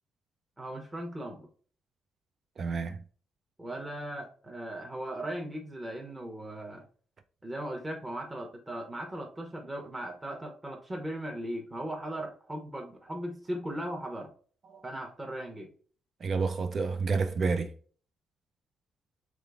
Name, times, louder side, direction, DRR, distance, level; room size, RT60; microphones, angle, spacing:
voice 1, 0.6-1.5 3.6-6.9 7.4-14.3 14.8-15.7, right 1 dB, 15° right, 1.0 m, -38 dB
voice 2, 2.6-3.0 14.7-14.8 16.2-17.7, right 4 dB, 45° right, 0.4 m, -29 dB
3.7 x 3.4 x 3.5 m
cardioid pair, 90°, 0 cm